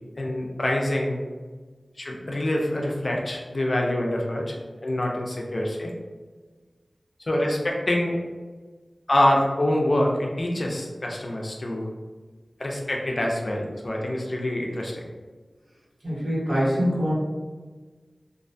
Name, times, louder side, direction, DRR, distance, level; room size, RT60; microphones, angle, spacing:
voice 1, 0.2-1.2 2.0-4.6 4.8-5.9 7.3-8.2 9.1-11.9 12.6-15.0, left 1 dB, 60° left, -1 dB, 0.4 m, -25 dB
voice 2, 16.0-17.1, equal, 80° right, -10 dB, 1.2 m, -24 dB
2.5 x 2.1 x 2.6 m, 1.4 s
wide cardioid pair, 45°, 0 cm